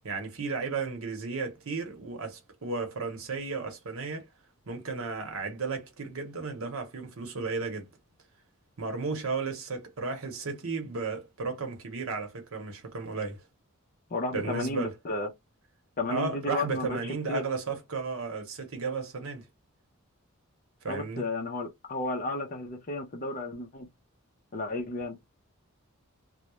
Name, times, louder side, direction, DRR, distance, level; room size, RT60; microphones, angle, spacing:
voice 1, 0.0-4.3 4.7-7.9 8.8-13.4 14.3-14.9 16.1-19.5 20.8-21.3, right 4 dB, 70° right, 0.8 m, -34 dB
voice 2, 14.1-15.3 16.0-17.0 17.3-17.4 20.9-23.9 24.5-25.2, left 2 dB, 40° left, 0.5 m, -33 dB
2.2 x 2.0 x 3.0 m
head